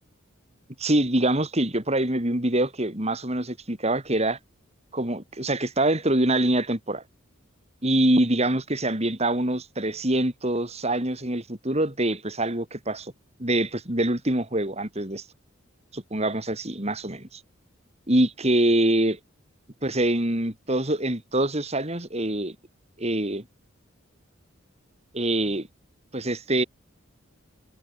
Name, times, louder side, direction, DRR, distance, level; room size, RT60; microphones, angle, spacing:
voice 1, 0.8-4.4 4.9-7.0 7.8-13.1 13.4-15.2 15.9-17.4 18.1-19.2 19.8-22.6 23.0-23.4 25.1-25.7 26.1-26.6, right 1 dB, 30° right, 3.7 m, -24 dB
head